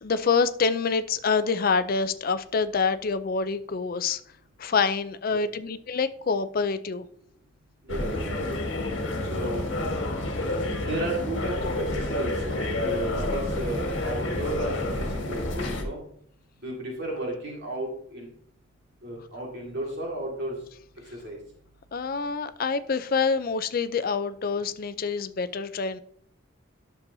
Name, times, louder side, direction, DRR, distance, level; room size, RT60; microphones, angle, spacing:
voice 1, 0.0-4.2 4.6-7.0 21.9-26.0, left 5 dB, 45° left, 0.4 m, -26 dB
voice 2, 7.8-8.6 9.3-9.9 10.8-12.6 12.8-16.0 16.6-18.3 19.0-20.5 21.1-21.4, right 1 dB, 55° right, 2.0 m, -33 dB
sound 1, 7.9-15.8, left 1 dB, 60° left, 1.5 m, -29 dB
10.5 x 6.9 x 2.7 m
head